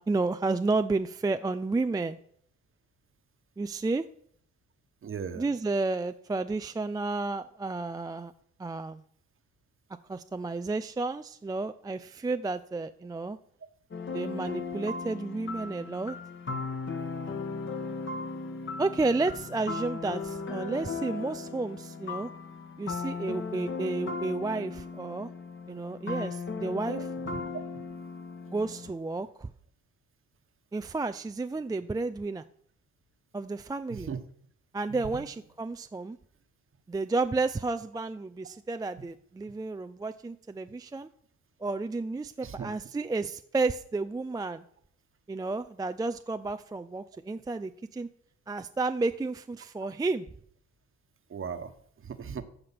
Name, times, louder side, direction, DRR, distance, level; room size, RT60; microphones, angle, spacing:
voice 1, 0.0-2.2 3.6-4.0 5.4-8.3 8.6-9.0 10.1-13.4 14.0-16.2 18.8-22.3 22.8-25.3 25.7-27.1 28.5-29.5 30.7-32.4 33.3-34.1 34.7-36.2 36.9-41.1 41.6-44.6 45.3-48.1 48.5-50.3, right 3 dB, 15° right, 9 dB, 0.4 m, -31 dB
voice 2, 5.0-5.4 27.2-27.4 33.9-34.2 35.1-35.2 42.4-42.7 51.3-51.7 52.0-52.4, right 6 dB, 45° right, 10 dB, 1.3 m, -37 dB
sound 1, 13.9-28.9, left 4 dB, 40° left, 1.6 m, -37 dB
14.0 x 5.1 x 5.9 m, 0.63 s
cardioid pair, 90°, 30 cm